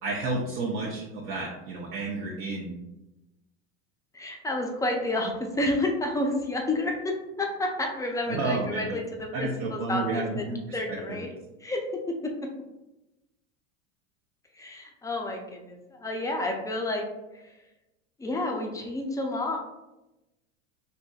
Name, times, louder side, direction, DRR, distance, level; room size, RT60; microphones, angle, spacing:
voice 1, 0.0-2.7 8.3-9.0 9.3-11.2, right 3 dB, 60° right, -4 dB, 0.7 m, -31 dB
voice 2, 4.1-11.3 11.6-12.3 14.6-17.1 17.3-17.4 18.2-19.6, left 2 dB, 10° left, 1 dB, 0.4 m, -30 dB
4.2 x 2.7 x 2.3 m, 0.98 s
hypercardioid pair, 100°, 37 cm